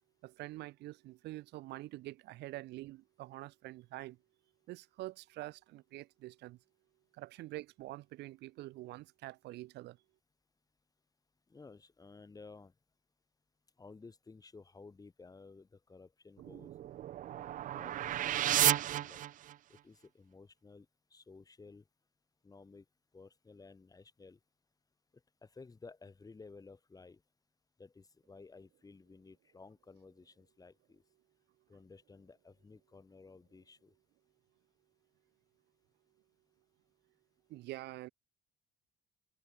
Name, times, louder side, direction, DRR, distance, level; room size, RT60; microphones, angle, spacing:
voice 1, 0.2-4.2 4.7-6.6 7.1-10.0 37.5-38.1, right 18 dB, 85° right, 4.8 m, -46 dB
voice 2, 11.5-12.8 13.8-16.7 17.6-19.2 19.7-21.9 22.4-22.9 23.1-24.4 25.1-27.2 27.8-31.0 31.7-33.9, left 4 dB, 20° left, 4.0 m, -55 dB
sound 1, 16.4-19.8, right 12 dB, 50° right, 0.5 m, -33 dB
cardioid pair, 110°, 17 cm